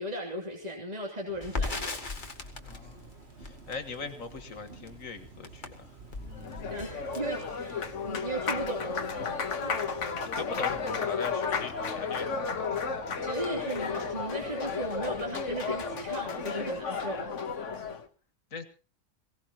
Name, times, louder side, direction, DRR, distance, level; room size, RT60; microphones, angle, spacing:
voice 1, 0.0-2.0 6.7-9.1 9.6-9.8 13.2-17.2, right 2 dB, 30° right, -1 dB, 3.0 m, -36 dB
sound 1, 1.3-16.2, right 5 dB, 55° right, 1.6 m, -51 dB
Crackle, 1.4-9.5 9.8-9.9 10.2-11.0, left 3 dB, 40° left, 1.8 m, -39 dB
voice 2, 2.6-3.1 3.4-5.9 10.3-13.0 18.5-18.6, left 4 dB, 90° left, 9 dB, 2.1 m, -40 dB
Applause, 6.2-18.0, left 5 dB, 65° left, 1.5 m, -33 dB
22.5 x 17.5 x 3.0 m, 0.33 s
omnidirectional pair, 1.4 m